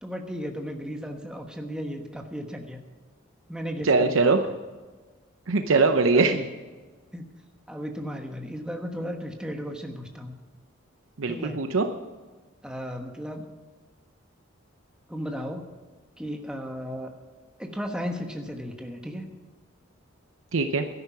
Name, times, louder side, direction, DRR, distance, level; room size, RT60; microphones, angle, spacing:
voice 1, 0.0-2.8 3.5-4.5 6.1-6.5 7.1-7.3 7.7-10.4 11.3-11.6 12.6-13.5 15.1-15.7 16.2-17.1 17.6-19.3, equal, 5° right, 3 dB, 1.2 m, -35 dB
voice 2, 3.8-4.4 5.5-6.4 11.2-11.9 20.5-20.8, right 3 dB, 80° right, 6 dB, 0.7 m, -21 dB
13.0 x 11.0 x 5.7 m, 1.3 s
head